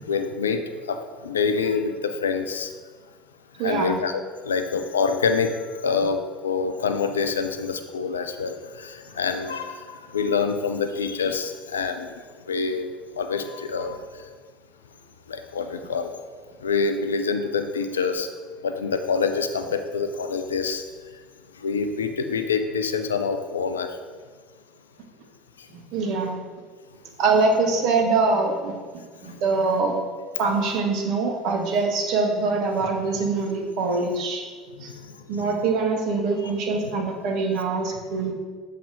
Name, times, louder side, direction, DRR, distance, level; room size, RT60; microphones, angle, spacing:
voice 1, 0.1-0.6 0.9-2.7 3.6-5.5 5.8-12.1 12.5-12.9 13.2-14.0 15.3-16.1 16.6-18.3 18.6-20.8 21.6-23.9 29.2-29.3 36.4-36.5, left 5 dB, 75° left, 7 dB, 0.4 m, -26 dB
voice 2, 3.6-4.0 25.7-26.4 27.2-28.8 29.2-30.0 30.4-34.5 34.8-34.9 35.3-38.3, right 4 dB, 50° right, 2 dB, 1.0 m, -24 dB
7.1 x 3.4 x 4.9 m, 1.5 s
figure-of-eight pair, 65°, 0 cm